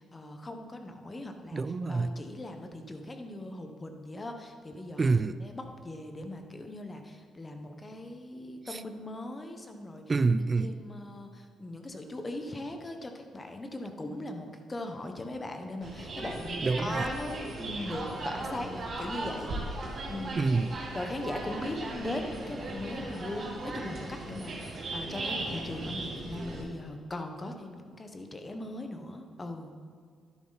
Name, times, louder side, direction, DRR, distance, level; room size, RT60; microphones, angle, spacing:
voice 1, 0.0-1.6 1.9-5.1 5.4-10.0 10.6-19.5 20.1-20.4 20.9-29.7, left 1 dB, 25° left, 5 dB, 1.1 m, -39 dB
voice 2, 1.5-2.2 5.0-5.4 8.7-8.8 10.1-10.8 16.6-17.1 20.3-20.8, right 3 dB, 30° right, 14 dB, 0.5 m, -27 dB
sound 1, 15.8-26.6, right 2 dB, 50° right, 2.6 m, -37 dB
11.0 x 10.0 x 4.1 m, 2.1 s
cardioid pair, 90°, 0 cm